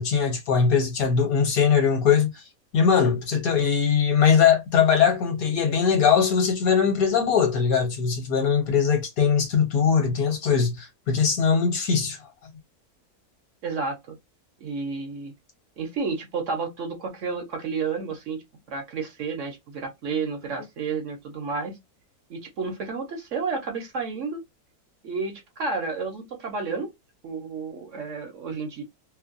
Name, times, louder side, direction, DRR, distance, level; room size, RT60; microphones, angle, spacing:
voice 1, 0.0-2.4 2.7-12.2, left 6 dB, 70° left, 1.5 m, -21 dB
voice 2, 13.6-14.2 14.6-15.3 15.8-18.4 18.7-21.8 22.3-24.4 25.0-26.9 27.2-28.8, right 4 dB, 60° right, 1.1 m, -31 dB
3.0 x 2.2 x 2.5 m
omnidirectional pair, 1.6 m